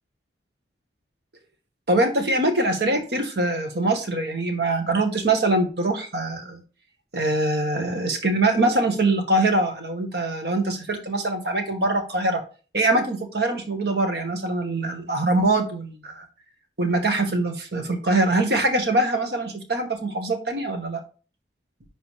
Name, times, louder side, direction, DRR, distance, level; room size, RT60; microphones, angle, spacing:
voice 1, 1.9-6.6 7.1-12.4 12.7-16.2 16.8-21.0, right 2 dB, 70° right, 4 dB, 1.6 m, -23 dB
11.0 x 4.2 x 3.4 m, 0.36 s
head